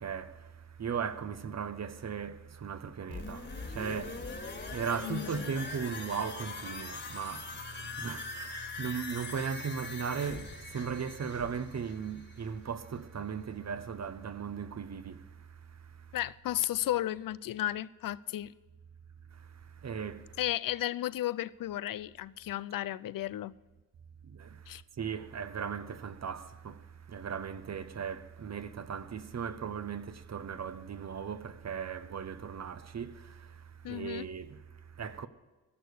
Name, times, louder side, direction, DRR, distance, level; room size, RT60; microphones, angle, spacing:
voice 1, 0.0-16.2 19.3-20.4 24.2-35.3, right 6 dB, 50° right, 0.8 m, -38 dB
sound 1, 3.1-12.8 13.1-13.2, left 3 dB, 30° left, 1.9 m, -42 dB
voice 2, 5.0-5.5 16.1-18.5 20.4-23.5 24.7-24.8 33.8-34.3, left 13 dB, 70° left, 0.5 m, -34 dB
16.0 x 6.4 x 6.9 m
cardioid pair, 70°, 35 cm